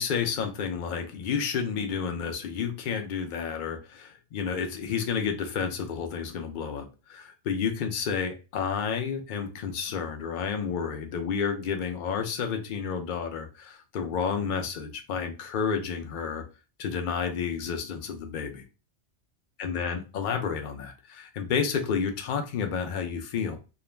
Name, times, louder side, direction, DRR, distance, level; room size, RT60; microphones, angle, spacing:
voice 1, 0.0-16.4 16.8-18.6 19.6-23.6, left 6 dB, 60° left, 5 dB, 0.5 m, -30 dB
2.4 x 2.0 x 3.1 m, 0.32 s
omnidirectional pair, 1.2 m